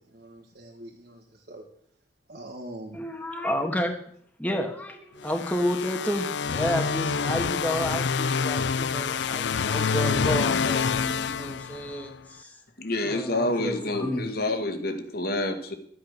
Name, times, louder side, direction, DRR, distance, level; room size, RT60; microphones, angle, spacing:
voice 1, 0.0-1.7 2.3-3.0, right 1 dB, 60° right, -2 dB, 2.0 m, -43 dB
voice 2, 2.9-3.9 4.4-12.6 13.0-14.3, equal, 10° left, 2 dB, 1.5 m, -31 dB
sound 1, 5.3-12.2, left 6 dB, 80° left, 0.5 m, -27 dB
voice 3, 12.8-15.7, left 1 dB, 60° left, 6 dB, 1.9 m, -28 dB
12.5 x 8.8 x 6.7 m, 0.64 s
head